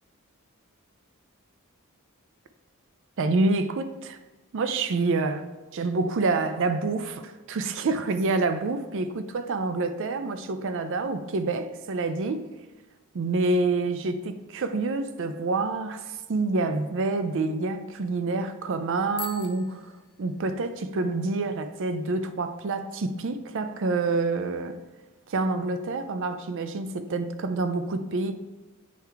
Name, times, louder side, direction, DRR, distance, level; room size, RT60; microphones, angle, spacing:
voice 1, 3.2-4.2 4.5-12.5 13.1-19.9 20.2-24.8 25.3-28.4, right 3 dB, 60° right, 0.5 m, -27 dB
Bicycle bell, 19.1-20.8, left 8 dB, 50° left, 0.6 m, -43 dB
8.4 x 3.4 x 4.6 m
head